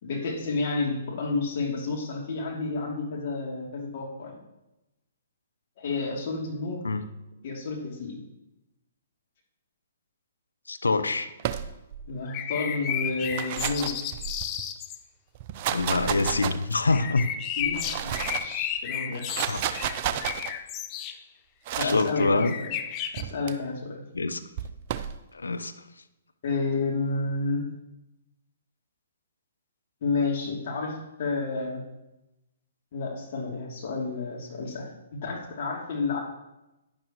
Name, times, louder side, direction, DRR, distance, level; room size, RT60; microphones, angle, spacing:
voice 1, 0.0-4.4 5.8-6.8 7.4-8.2 12.1-13.9 17.6-19.3 21.8-22.7 23.1-24.0 26.4-27.6 30.0-31.8 32.9-36.2, left 3 dB, 50° left, -2 dB, 3.0 m, -30 dB
voice 2, 10.7-11.3 15.7-17.3 19.5-19.6 21.8-22.5 24.1-24.4 25.3-25.7, left 3 dB, 85° left, 10 dB, 0.8 m, -25 dB
sound 1, 11.4-12.1 13.1-14.6 15.3-17.0 17.6-18.5 19.1-20.5 21.6-22.1 23.2-23.5 24.6-25.2, right 10 dB, 40° right, 0.7 m, -32 dB
sound 2, 12.3-15.0 16.9-21.2 22.1-23.2, left 9 dB, 30° left, 0.7 m, -33 dB
11.0 x 10.5 x 3.1 m, 0.93 s
hypercardioid pair, 130°, 0 cm